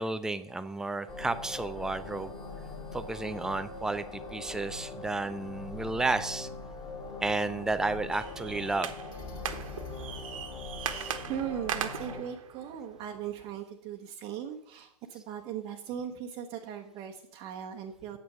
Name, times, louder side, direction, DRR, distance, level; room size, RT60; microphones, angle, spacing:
voice 1, 0.0-2.3 2.9-6.5 7.2-8.9, right 3 dB, 5° right, 12 dB, 0.3 m, -32 dB
sound 1, 1.1-12.2, left 3 dB, 20° left, 2.4 m, -42 dB
sound 2, 8.1-13.6, right 9 dB, 60° right, 1.3 m, -39 dB
voice 2, 10.6-18.2, right 9 dB, 25° right, 1 dB, 1.0 m, -39 dB
9.3 x 8.0 x 6.7 m, 0.75 s
hypercardioid pair, 130°, 20 cm